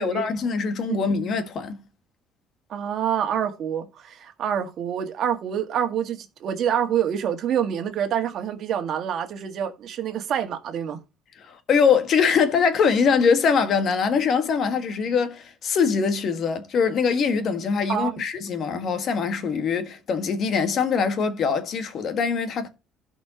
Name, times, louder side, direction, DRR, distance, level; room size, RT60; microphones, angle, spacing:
voice 1, 0.0-1.8 11.4-22.7, left 6 dB, 45° left, 1.6 m, -23 dB
voice 2, 2.7-11.0 17.9-18.2, right 9 dB, 50° right, 1.8 m, -27 dB
16.0 x 5.5 x 2.9 m
cardioid pair, 150°, 0 cm